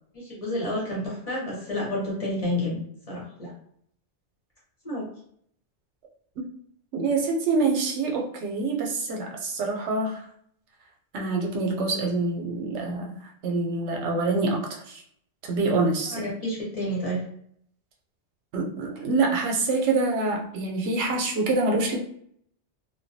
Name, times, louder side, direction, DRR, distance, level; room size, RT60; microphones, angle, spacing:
voice 1, 0.1-2.8 3.1-3.5 4.8-5.1 16.1-17.2, left 1 dB, 35° left, -5 dB, 0.8 m, -30 dB
voice 2, 6.9-10.2 11.1-13.1 13.4-15.0 15.4-16.3 18.5-22.0, right 3 dB, 85° right, 1 dB, 0.9 m, -26 dB
2.2 x 2.2 x 2.6 m, 0.66 s
omnidirectional pair, 1.1 m